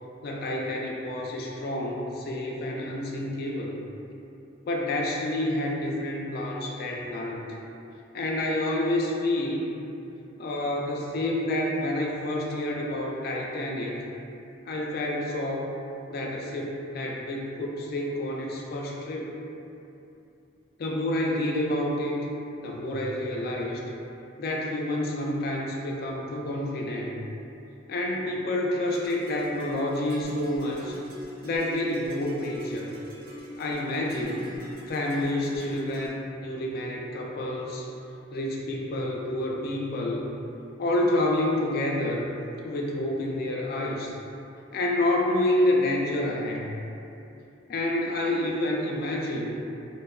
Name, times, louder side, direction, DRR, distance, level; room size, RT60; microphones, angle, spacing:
voice 1, 0.2-3.8 4.7-7.6 8.1-9.8 10.4-14.0 14.7-15.7 16.1-19.3 20.8-22.3 22.6-23.8 24.4-27.2 27.9-31.0 31.4-32.9 33.6-34.5 34.9-37.9 38.3-40.3 40.8-42.2 42.6-44.1 44.7-46.8 47.7-49.5, left 1 dB, 50° left, -1 dB, 0.3 m, -28 dB
sound 1, 28.9-36.1, equal, 50° right, 0.8 m, -43 dB
2.6 x 2.2 x 2.2 m, 2.8 s
head